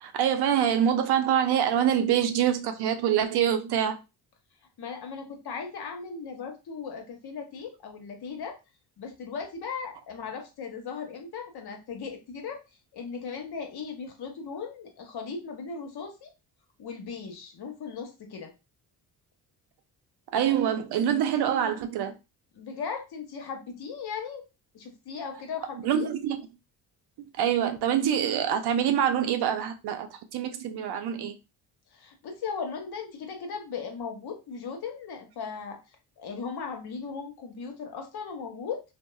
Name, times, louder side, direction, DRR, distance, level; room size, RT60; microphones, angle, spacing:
voice 1, 0.0-4.0 20.3-22.1 25.8-26.4 27.2-31.4, right 9 dB, 55° right, 0.6 m, -25 dB
voice 2, 4.8-8.6 9.0-12.6 12.9-16.3 16.8-18.5 22.5-24.4 24.7-26.1 31.9-35.8 36.2-38.8, left 5 dB, 55° left, 0.9 m, -37 dB
2.7 x 2.1 x 2.3 m
hypercardioid pair, 50°, 46 cm